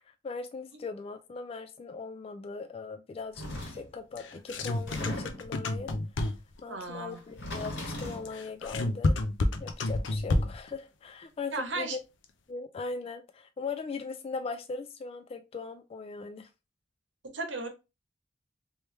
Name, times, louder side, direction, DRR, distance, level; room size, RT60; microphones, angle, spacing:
voice 1, 0.2-5.9 6.6-9.2 9.6-12.0 12.5-16.5, left 4 dB, 30° left, 0.3 m, -39 dB
sound 1, 3.4-3.9 4.7-5.5 7.2-8.3, left 1 dB, 70° left, 1.8 m, -38 dB
sound 2, 4.2-6.6 8.3-10.7, left 2 dB, 90° left, 0.6 m, -29 dB
voice 2, 6.7-7.2 11.5-12.0 17.3-17.7, right 3 dB, 80° right, 1.0 m, -35 dB
3.3 x 3.1 x 3.1 m
head